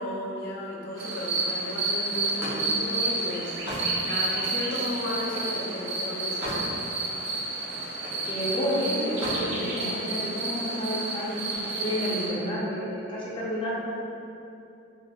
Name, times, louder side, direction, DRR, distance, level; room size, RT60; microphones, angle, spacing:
voice 1, 0.0-6.7, left 1 dB, 75° left, -3 dB, 0.4 m, -34 dB
sound 1, 1.0-12.3, right 2 dB, 65° right, 0.5 m, -30 dB
Slam, 2.1-5.6 6.0-6.7 7.1-8.3 9.0-9.5, equal, 10° right, 0.7 m, -37 dB
voice 2, 8.2-13.8, equal, 25° left, -7 dB, 0.5 m, -30 dB
4.1 x 2.0 x 2.3 m, 2.7 s
head